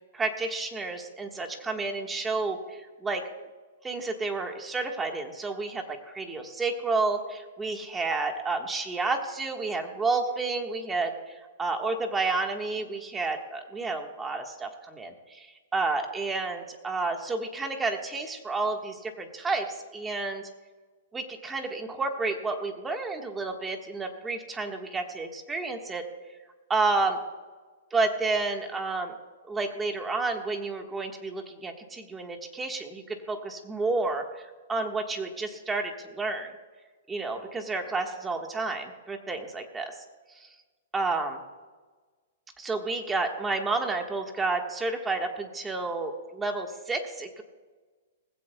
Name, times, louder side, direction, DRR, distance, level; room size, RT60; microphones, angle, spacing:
voice 1, 0.1-3.2 3.8-15.5 15.7-20.4 21.1-26.0 26.7-27.2 27.9-29.1 29.5-34.4 34.7-36.5 37.1-39.9 40.9-41.4 42.6-47.4, right 3 dB, 10° right, 3 dB, 1.5 m, -30 dB
20.0 x 16.0 x 2.3 m, 1.4 s
hypercardioid pair, 145°, 0 cm